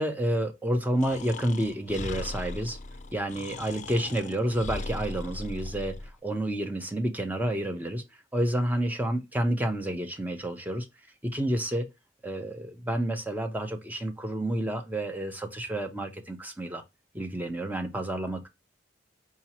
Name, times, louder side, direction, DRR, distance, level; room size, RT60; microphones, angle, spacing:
voice 1, 0.0-2.8 3.1-8.0 8.3-10.9 11.2-11.9 12.2-16.8 17.1-18.5, right 1 dB, 10° right, 0.7 m, -29 dB
Breathing, 1.0-6.1, left 2 dB, 40° left, 0.5 m, -38 dB
4.8 x 2.9 x 2.8 m
head